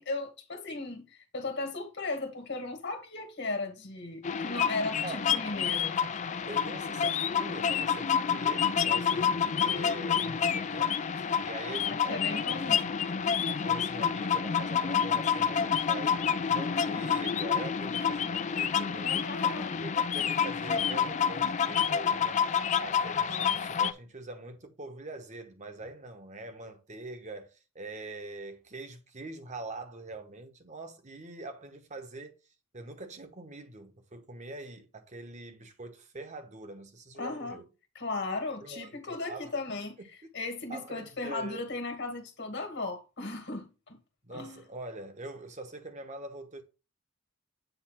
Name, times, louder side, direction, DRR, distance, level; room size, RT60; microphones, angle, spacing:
voice 1, 0.0-6.0 11.9-12.9 19.0-19.8 23.3-23.5 37.2-37.6 38.0-40.0 40.3-44.0 44.3-44.7, left 3 dB, 55° left, 1.7 m, -36 dB
sound 1, 4.2-23.9, left 7 dB, 35° left, 0.4 m, -28 dB
voice 2, 6.5-12.7 13.5-32.3 32.7-37.7 38.6-39.5 40.7-41.6 44.2-46.6, right 2 dB, 35° right, 1.0 m, -44 dB
8.0 x 2.7 x 5.7 m
head